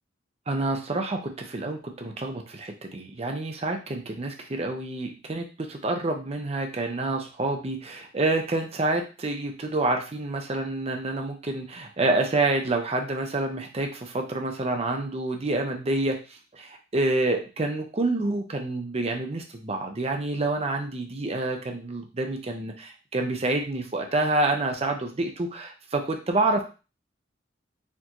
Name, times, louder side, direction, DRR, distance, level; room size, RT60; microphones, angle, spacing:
voice 1, 0.5-16.2 16.5-26.6, right 2 dB, 35° right, 4 dB, 0.6 m, -28 dB
4.3 x 2.6 x 2.9 m, 0.32 s
head